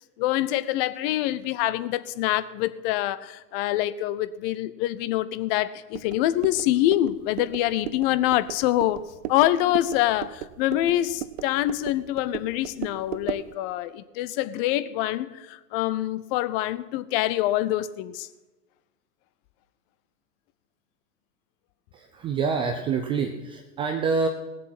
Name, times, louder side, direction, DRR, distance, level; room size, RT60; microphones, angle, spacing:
voice 1, 0.2-9.0 9.3-18.3, left 14 dB, 40° left, 0.7 m, -25 dB
sound 1, 5.9-13.5, right 13 dB, 45° right, 0.7 m, -37 dB
voice 2, 21.9-24.3, right 5 dB, 15° right, 0.3 m, -26 dB
18.0 x 7.4 x 6.0 m
figure-of-eight pair, 90°, 46 cm